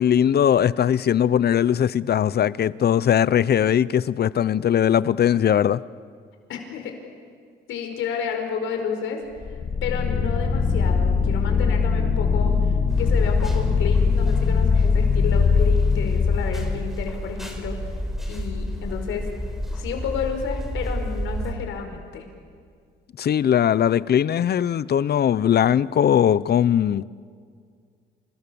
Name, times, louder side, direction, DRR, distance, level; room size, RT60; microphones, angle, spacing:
voice 1, 0.0-5.8 23.2-27.0, left 9 dB, 55° left, 0.8 m, -20 dB
voice 2, 6.5-7.0 7.7-9.2 9.8-17.8 18.3-19.2 19.7-22.2, left 6 dB, 85° left, 5.1 m, -31 dB
sound 1, 9.4-17.1, left 5 dB, 35° left, 2.5 m, -21 dB
sound 2, 12.9-21.5, equal, ahead, 6.0 m, -31 dB
29.0 x 29.0 x 7.1 m
cardioid pair, 90°, 20 cm